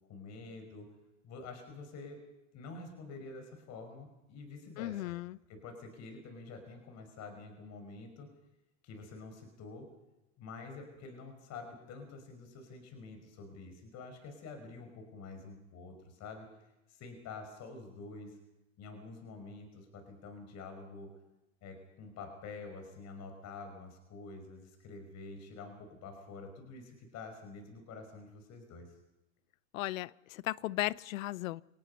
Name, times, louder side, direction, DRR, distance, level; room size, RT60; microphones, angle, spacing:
voice 1, 0.1-0.9 1.2-2.2 2.5-5.1 5.5-8.3 8.8-9.9 10.4-16.5 16.9-18.4 18.8-21.1 21.6-29.0, left 3 dB, 40° left, 5.3 m, -48 dB
voice 2, 4.8-5.4 29.7-31.6, left 17 dB, 75° left, 0.7 m, -36 dB
26.5 x 18.5 x 5.5 m
hypercardioid pair, 115°, 40 cm